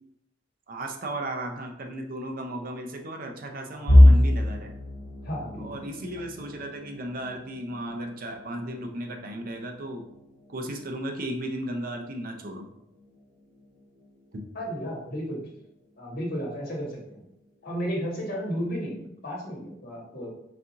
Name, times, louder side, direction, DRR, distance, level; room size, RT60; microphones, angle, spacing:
voice 1, 0.7-4.7 5.6-10.0 10.5-12.7 14.3-14.4, right 1 dB, 50° right, 3 dB, 0.6 m, -35 dB
sound 1, 3.9-15.7 16.1-16.4 16.8-16.9 17.8-18.3, left 1 dB, 85° left, 0.9 m, -26 dB
voice 2, 5.2-5.9 14.5-15.4 16.0-17.2 17.6-20.3, equal, 55° left, -3 dB, 1.4 m, -33 dB
4.1 x 2.7 x 3.5 m, 0.79 s
head